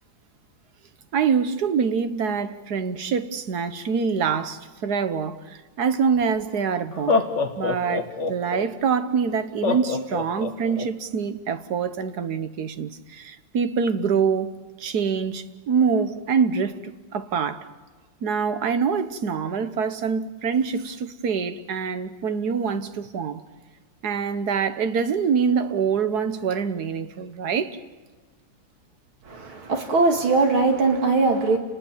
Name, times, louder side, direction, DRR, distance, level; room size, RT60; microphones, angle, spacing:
voice 1, 1.1-7.2 7.6-14.5 14.8-17.7 18.2-23.4 24.0-27.8, right 6 dB, 55° right, 1.6 m, -25 dB
Laughter, 6.2-6.3 6.9-8.6 9.6-10.9, left 4 dB, 35° left, 1.8 m, -25 dB
voice 2, 29.3-31.6, right 3 dB, 75° right, 3.0 m, -20 dB
30.0 x 20.0 x 7.4 m
omnidirectional pair, 2.3 m